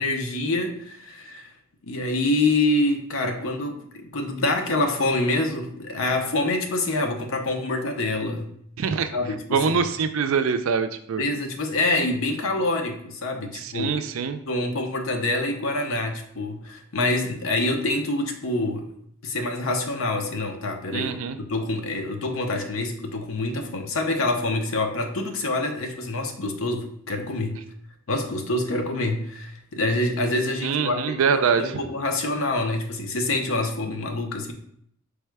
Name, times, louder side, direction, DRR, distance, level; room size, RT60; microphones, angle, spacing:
voice 1, 0.0-1.5 1.8-8.5 9.1-9.8 11.2-13.9 14.5-18.9 19.2-21.1 21.4-27.6 28.1-31.2 31.6-34.5, left 2 dB, 70° left, 4 dB, 0.6 m, -26 dB
voice 2, 8.8-9.1 9.5-11.2 13.6-14.4 20.9-21.4 30.6-31.8, right 6 dB, 75° right, 9 dB, 0.4 m, -24 dB
4.8 x 2.2 x 4.6 m, 0.69 s
head